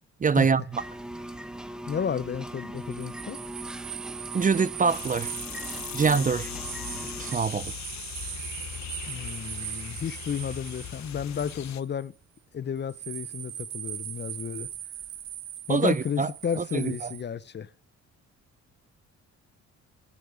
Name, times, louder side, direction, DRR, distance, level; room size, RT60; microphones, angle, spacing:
voice 1, 0.2-0.8 4.3-5.3 5.9-6.5 7.2-7.7 15.7-16.3 16.6-17.1, right 5 dB, 25° right, 0.5 m, -24 dB
sound 1, 0.7-7.4, right 1 dB, ahead, 1.0 m, -40 dB
voice 2, 1.9-3.4 9.1-12.1 12.5-14.7 15.7-17.7, left 7 dB, 35° left, 0.6 m, -32 dB
sound 2, 2.8-12.0 12.9-17.2, right 11 dB, 65° right, 1.0 m, -40 dB
sound 3, 4.9-11.8, left 11 dB, 65° left, 0.9 m, -40 dB
8.5 x 8.4 x 8.2 m
cardioid pair, 90°, 30 cm